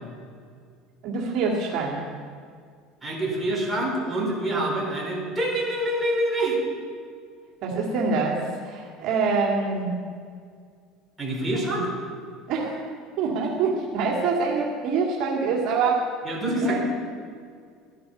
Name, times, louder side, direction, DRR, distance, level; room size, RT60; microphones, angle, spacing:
voice 1, 1.0-2.1 7.6-9.9 11.7-11.8 12.5-12.9 13.2-16.1 16.6-16.8, right 4 dB, 60° right, -2 dB, 2.1 m, -25 dB
voice 2, 3.0-6.6 11.2-11.9 16.2-16.8, right 1 dB, 10° right, -4 dB, 4.1 m, -26 dB
13.5 x 10.5 x 5.6 m, 2.1 s
supercardioid pair, 125°, 0 cm